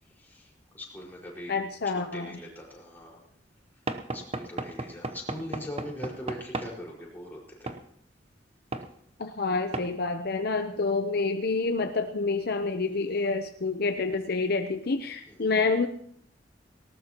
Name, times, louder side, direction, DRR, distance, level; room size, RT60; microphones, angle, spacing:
voice 1, 0.0-3.3 4.1-7.7 15.3-15.5, left 1 dB, 10° left, -3 dB, 5.1 m, -41 dB
voice 2, 1.5-2.3 9.2-15.9, left 3 dB, 60° left, 7 dB, 0.8 m, -28 dB
Knock / Wood, 3.9-6.8 7.7-7.8 8.7-8.9 9.7-9.9, right 2 dB, 35° right, 0.9 m, -35 dB
19.0 x 18.5 x 3.0 m, 0.67 s
head